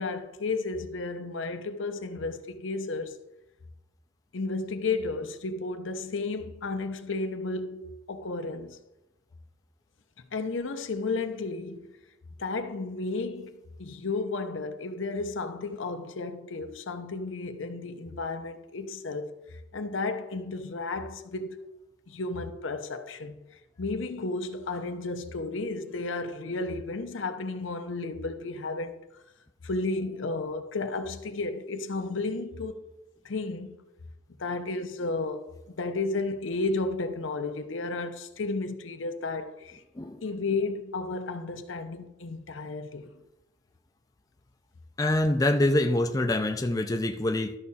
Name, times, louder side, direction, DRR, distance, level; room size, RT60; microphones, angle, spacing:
voice 1, 0.0-3.2 4.3-8.8 10.3-12.0 12.4-21.6 22.1-23.4 23.8-29.0 29.6-32.8 33.2-33.8 34.4-39.8 40.2-43.1, left 3 dB, 80° left, 0.8 m, -33 dB
voice 2, 45.0-47.6, left 1 dB, 20° left, 0.4 m, -25 dB
12.5 x 4.8 x 4.2 m
head